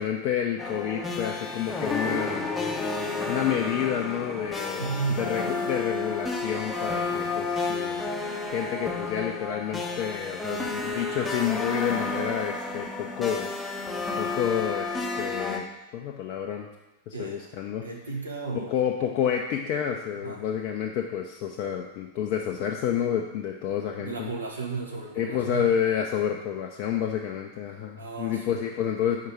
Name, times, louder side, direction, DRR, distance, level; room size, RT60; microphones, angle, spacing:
voice 1, 0.0-2.5 3.3-8.1 8.5-13.5 14.2-15.7 15.9-16.7 17.1-17.8 18.5-24.3 25.1-29.2, left 9 dB, 45° left, 1 dB, 0.5 m, -29 dB
sound 1, 0.6-15.6, left 3 dB, 10° left, 0.7 m, -31 dB
voice 2, 4.8-5.3 17.1-17.4 17.8-18.7 20.2-20.4 24.0-25.7 28.0-28.6, right 4 dB, 75° right, 0 dB, 1.1 m, -33 dB
4.7 x 4.6 x 4.7 m, 1.1 s
figure-of-eight pair, 90°, 0 cm